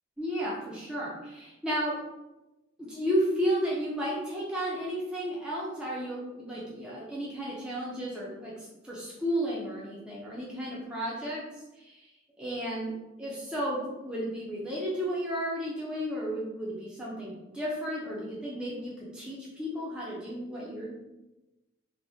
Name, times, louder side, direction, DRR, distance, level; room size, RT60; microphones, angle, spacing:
voice 1, 0.2-2.0 2.8-11.4 11.8-12.1 12.4-20.9, equal, 5° right, -7 dB, 0.5 m, -33 dB
3.4 x 2.1 x 2.6 m, 1.0 s
head